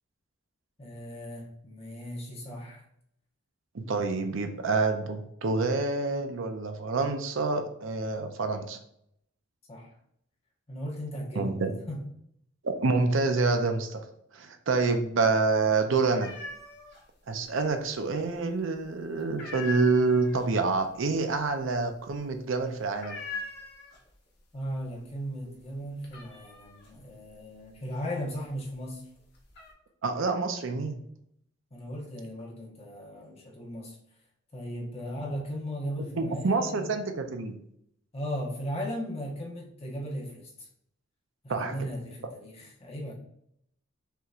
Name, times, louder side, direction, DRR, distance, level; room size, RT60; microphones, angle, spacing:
voice 1, 0.8-2.8 9.7-9.9 10.7-12.0 24.5-29.1 31.7-34.0 34.5-36.9 38.1-40.7 41.6-43.1, equal, 30° left, -3 dB, 1.1 m, -37 dB
voice 2, 3.7-8.8 11.4-11.7 12.6-14.0 14.3-16.3 17.3-23.3 30.0-31.0 36.2-37.6 41.5-41.7, right 3 dB, 70° right, 6 dB, 0.6 m, -27 dB
sound 1, 16.2-17.0 17.3-18.1 18.5-18.8 19.2-24.3 24.6-25.1 25.5-28.6 29.1-29.7, left 3 dB, 55° left, 1.2 m, -41 dB
5.7 x 3.0 x 2.4 m, 0.71 s
head